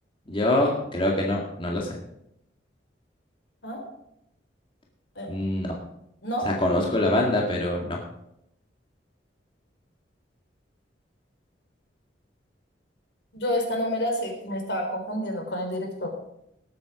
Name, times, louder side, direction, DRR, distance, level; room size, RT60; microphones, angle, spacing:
voice 1, 0.3-2.0 5.3-5.8 6.4-8.0, left 1 dB, 30° left, -1 dB, 2.0 m, -24 dB
voice 2, 13.3-16.1, left 1 dB, 70° left, 3 dB, 3.9 m, -29 dB
19.5 x 8.0 x 5.0 m, 0.79 s
head